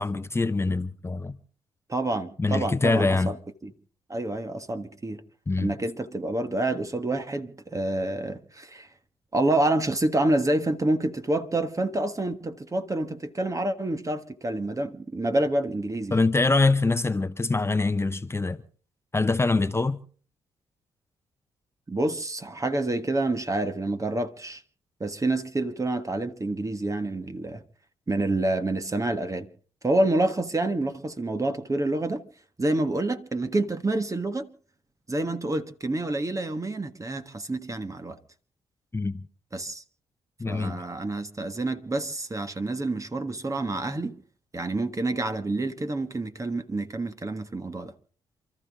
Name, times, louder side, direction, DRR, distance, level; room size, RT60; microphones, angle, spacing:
voice 1, 0.0-1.4 2.4-3.3 5.5-5.7 16.1-18.6 19.1-20.0 38.9-39.2 40.4-40.8, left 3 dB, 20° left, 0.8 m, -24 dB
voice 2, 1.9-3.4 3.6-3.7 4.1-5.2 5.6-8.9 9.3-16.2 21.9-24.6 25.0-27.6 28.1-29.5 29.8-32.2 32.6-34.5 35.1-38.2 39.5-39.8 40.5-44.2 44.5-47.9, right 2 dB, 30° right, 1.5 m, -28 dB
28.5 x 13.0 x 3.6 m
supercardioid pair, 50°, 12 cm